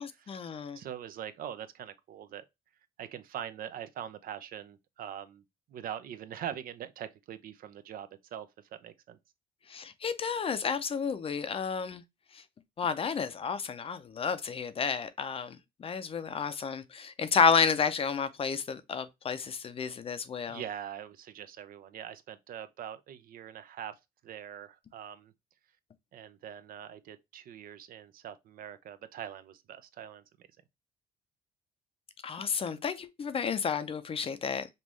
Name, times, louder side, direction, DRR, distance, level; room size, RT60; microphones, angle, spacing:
voice 1, 0.0-0.8 9.7-12.0 12.8-20.6 32.2-34.7, left 6 dB, 35° left, 0.6 m, -31 dB
voice 2, 0.8-2.4 3.0-5.4 5.7-8.5 8.8-9.2 20.5-24.0 24.2-25.3 26.1-30.5, right 10 dB, 60° right, 0.6 m, -43 dB
5.4 x 2.5 x 3.1 m
cardioid pair, 110°, 17 cm